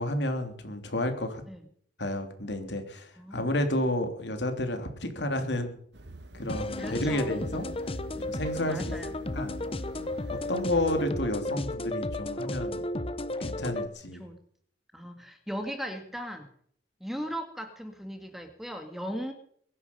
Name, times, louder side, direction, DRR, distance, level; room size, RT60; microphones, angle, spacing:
voice 1, 0.0-1.4 2.0-5.8 6.3-7.7 8.3-9.0 9.3-9.6 10.3-12.8 13.4-14.2, left 1 dB, 70° left, 6 dB, 3.2 m, -31 dB
voice 2, 3.2-3.8 6.8-7.3 8.7-9.1 10.7-10.8 14.2-14.4 14.9-16.5 17.0-19.3, equal, ahead, 6 dB, 2.1 m, -38 dB
sound 1, 5.9-11.1, right 1 dB, 70° right, 1.4 m, -46 dB
sound 2, 6.5-13.9, left 2 dB, 30° left, 1.0 m, -34 dB
22.5 x 11.0 x 5.4 m, 0.63 s
head